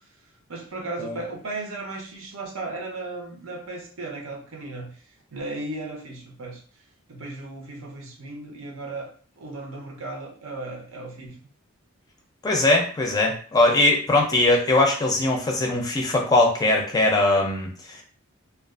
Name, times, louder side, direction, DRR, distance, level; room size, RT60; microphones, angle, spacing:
voice 1, 0.5-4.9 5.3-6.6 7.1-11.4, right 2 dB, 75° right, 1 dB, 0.7 m, -35 dB
voice 2, 12.4-18.0, left 2 dB, 20° left, 0 dB, 0.4 m, -21 dB
2.4 x 2.2 x 2.4 m, 0.43 s
head